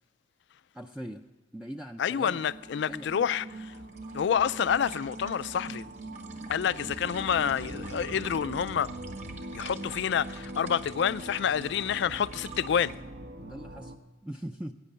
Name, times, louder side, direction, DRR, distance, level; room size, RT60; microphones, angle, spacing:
voice 1, 0.7-1.2 1.5-2.4 2.9-3.3 13.4-13.9 14.2-14.7, equal, 5° right, 0.4 m, -40 dB
voice 2, 2.0-3.7 4.1-5.9 6.5-8.9 9.5-13.0, left 8 dB, 65° left, 0.3 m, -28 dB
sound 1, 2.2-14.0, right 1 dB, 65° right, 1.0 m, -42 dB
sound 2, 3.5-13.0, right 5 dB, 40° right, 1.6 m, -50 dB
15.0 x 9.1 x 6.8 m
head